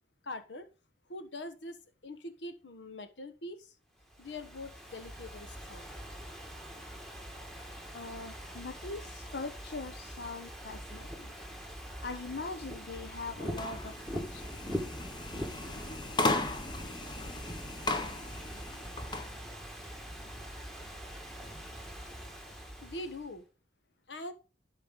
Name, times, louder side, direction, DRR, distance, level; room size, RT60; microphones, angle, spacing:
voice 1, 0.2-0.7 1.1-3.7 4.2-5.9 22.8-23.5 24.1-24.3, left 1 dB, 90° left, 9 dB, 1.3 m, -43 dB
Ocean / Fireworks, 4.0-23.3, equal, ahead, 1.6 m, -43 dB
voice 2, 7.9-11.3 12.0-14.5, left 3 dB, 65° left, 6 dB, 0.8 m, -42 dB
sound 1, 13.5-19.3, left 2 dB, 25° left, 0.9 m, -36 dB
12.0 x 4.8 x 3.7 m, 0.32 s
head